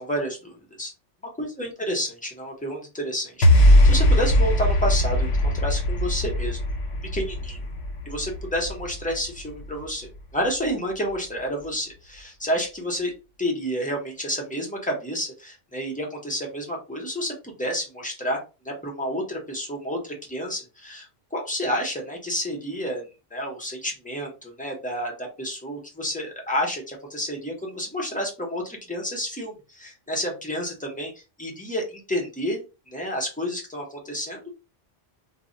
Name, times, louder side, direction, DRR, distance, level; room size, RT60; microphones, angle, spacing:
voice 1, 0.0-0.9 1.4-6.6 7.1-7.6 8.0-13.1 13.4-31.1 31.4-32.6 32.9-34.6, equal, 10° left, -1 dB, 0.4 m, -30 dB
sound 1, 3.4-9.9, left 1 dB, 80° left, 0.9 m, -20 dB
2.1 x 2.0 x 3.7 m, 0.31 s
omnidirectional pair, 1.3 m